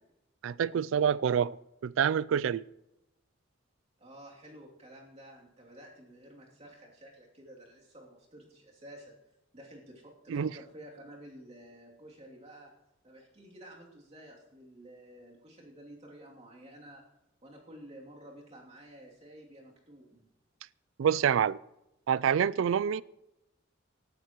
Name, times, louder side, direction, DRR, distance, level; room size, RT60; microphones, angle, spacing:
voice 1, 0.4-1.6 1.8-2.6 10.3-10.5 21.0-21.6 22.1-23.0, right 8 dB, 80° right, 0.3 m, -27 dB
voice 2, 4.0-9.1 9.5-12.7 13.0-17.0 17.4-20.2, right 1 dB, 35° right, 2.8 m, -51 dB
18.0 x 13.0 x 3.0 m
head